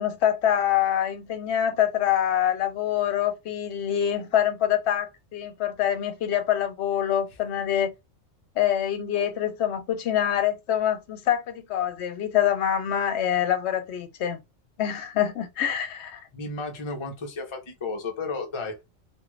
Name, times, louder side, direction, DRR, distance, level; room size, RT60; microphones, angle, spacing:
voice 1, 0.0-7.9 8.6-14.4 14.8-16.2, left 10 dB, 70° left, 0.8 m, -25 dB
voice 2, 16.3-18.8, left 3 dB, 35° left, 0.5 m, -33 dB
2.5 x 2.4 x 3.0 m
omnidirectional pair, 1.3 m